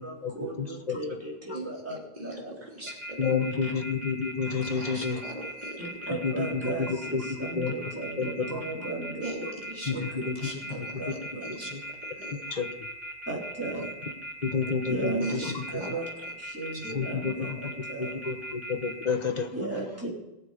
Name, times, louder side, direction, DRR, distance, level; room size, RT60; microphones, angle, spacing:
voice 1, 0.0-2.0 2.2-2.7 3.6-3.7 5.8-9.6 9.9-10.3 10.6-11.8 12.2-12.3 13.3-14.0 14.9-15.4 15.7-16.1 16.4-18.1 19.5-20.1, right 2 dB, 15° right, -5 dB, 4.1 m, -36 dB
voice 2, 0.6-1.0 3.2-5.2 6.2-7.2 7.6-7.7 8.2-8.6 9.9-11.4 11.7-11.8 12.5-12.7 14.4-15.6 16.9-17.6 18.0-19.5, left 5 dB, 45° left, 6 dB, 1.3 m, -30 dB
voice 3, 1.5-3.3 4.7-5.8 9.2-9.4 9.7-10.1 10.4-10.8 11.4-12.4 15.0-15.5 15.8-15.9, right 2 dB, 40° right, -2 dB, 3.4 m, -38 dB
sound 1, 2.9-19.1, equal, 70° right, 2.0 m, -39 dB
18.5 x 7.5 x 5.2 m, 1.0 s
omnidirectional pair, 1.1 m